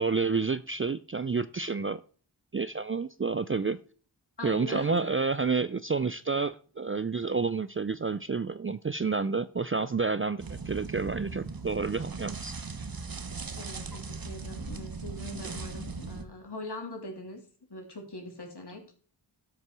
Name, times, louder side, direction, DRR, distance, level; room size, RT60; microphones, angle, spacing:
voice 1, 0.0-2.0 2.5-3.8 4.4-12.5, right 4 dB, 30° right, 15 dB, 0.4 m, -29 dB
voice 2, 4.4-5.1 13.5-17.4 17.7-18.9, left 2 dB, 60° left, 2 dB, 3.3 m, -41 dB
sound 1, 10.4-16.3, right 4 dB, 50° right, 1.1 m, -39 dB
12.5 x 6.0 x 6.1 m, 0.42 s
wide cardioid pair, 80°, 46 cm